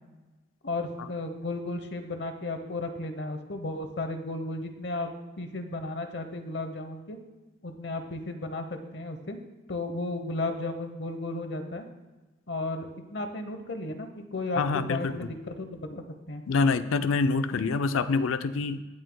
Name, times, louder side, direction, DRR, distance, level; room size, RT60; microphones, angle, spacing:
voice 1, 0.6-5.1 5.4-7.2 7.6-9.4 9.7-11.9 12.5-16.4, left 2 dB, 60° left, 7 dB, 0.9 m, -34 dB
voice 2, 14.6-15.3 16.5-18.8, left 4 dB, 90° left, 11 dB, 0.5 m, -26 dB
17.0 x 6.4 x 2.2 m, 1.2 s
head